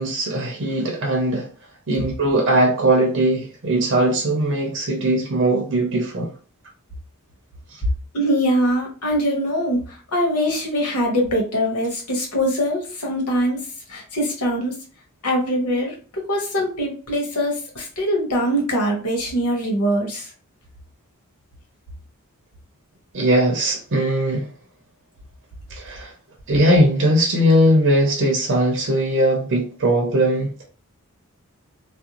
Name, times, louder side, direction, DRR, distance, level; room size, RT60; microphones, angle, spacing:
voice 1, 0.0-1.5 1.9-6.3 23.1-24.5 25.7-26.1 26.5-30.6, right 1 dB, 55° right, 0.6 m, -19 dB
voice 2, 8.1-13.6 13.9-14.8 15.2-20.3, equal, 85° left, 1.0 m, -22 dB
2.5 x 2.1 x 2.9 m
head